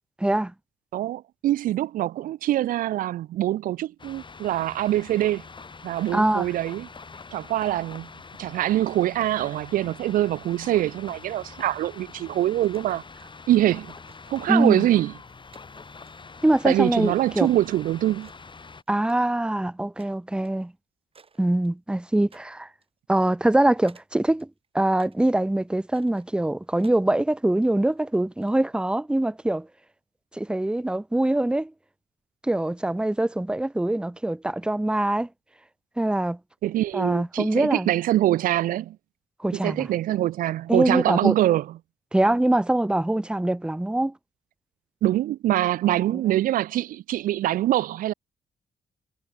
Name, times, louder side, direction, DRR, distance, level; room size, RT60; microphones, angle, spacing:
voice 1, 0.2-0.5 6.1-6.5 14.5-14.9 16.4-17.5 18.9-20.7 21.4-22.7 23.1-24.5 24.7-29.7 30.3-31.7 32.4-35.3 36.0-36.4 36.9-37.9 39.4-39.9 40.7-41.3 42.1-44.1, right 1 dB, 5° right, 0.6 m, -23 dB
voice 2, 0.9-5.4 5.8-6.9 7.3-8.1 8.4-13.0 13.5-13.9 14.3-15.1 16.6-18.3 36.6-39.0 39.5-41.7 45.0-48.1, right 13 dB, 80° right, 0.4 m, -24 dB
sound 1, 4.0-18.8, left 4 dB, 35° left, 6.3 m, -44 dB
sound 2, 12.6-13.3 13.9-14.3 14.6-18.5 18.7-19.6 20.0-20.2 20.4-20.7 21.1-22.0 22.3-22.5 22.8-22.9 23.5-24.1 24.4-25.2 25.6-27.0 27.8-28.6, right 5 dB, 40° right, 7.7 m, -58 dB
cardioid pair, 80°, 14 cm